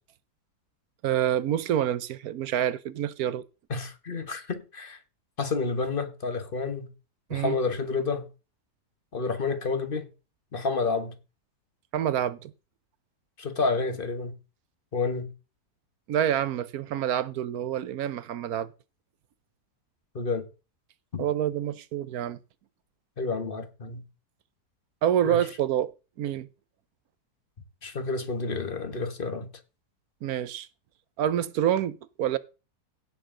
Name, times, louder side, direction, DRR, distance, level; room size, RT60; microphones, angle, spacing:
voice 1, 1.0-3.4 7.3-7.6 11.9-12.5 16.1-18.7 21.2-22.4 25.0-25.9 26.2-26.5 30.2-30.7 31.2-32.4, right 10 dB, 65° right, 1.2 m, -27 dB
voice 2, 3.7-5.0 5.4-6.9 7.3-8.3 9.1-10.0 10.5-11.1 13.4-14.3 14.9-15.3 20.1-20.5 21.1-21.2 23.2-24.0 25.3-25.4 27.8-29.5, left 4 dB, 35° left, 1.4 m, -29 dB
16.5 x 6.8 x 3.8 m
omnidirectional pair, 1.7 m